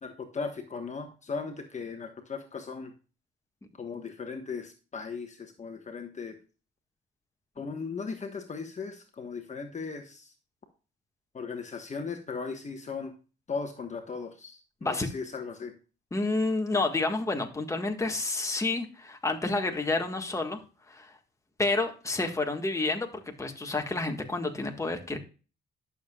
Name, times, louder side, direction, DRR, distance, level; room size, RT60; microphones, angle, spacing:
voice 1, 0.0-2.9 3.8-6.4 7.6-10.3 11.3-13.1 13.5-15.7, left 5 dB, 35° left, 5 dB, 1.3 m, -37 dB
voice 2, 16.1-20.6 20.9-21.1 21.6-25.2, left 3 dB, 15° left, 4 dB, 1.6 m, -29 dB
11.5 x 6.9 x 2.4 m, 0.35 s
cardioid pair, 90°, 20 cm